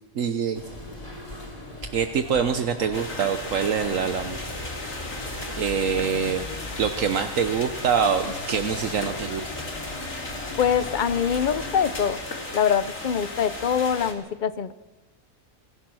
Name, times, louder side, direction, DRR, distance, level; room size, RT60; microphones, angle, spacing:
voice 1, 0.1-0.6 1.9-4.4 5.5-6.4 6.8-9.4, right 7 dB, 75° right, 8 dB, 1.3 m, -25 dB
sound 1, 0.5-12.1, left 1 dB, 25° left, 3.8 m, -38 dB
sound 2, 2.9-14.1, left 2 dB, 75° left, 3.2 m, -36 dB
voice 2, 10.6-12.2 12.5-14.7, left 8 dB, 45° left, 15 dB, 0.8 m, -24 dB
26.0 x 16.0 x 6.3 m, 1.1 s
omnidirectional pair, 1.4 m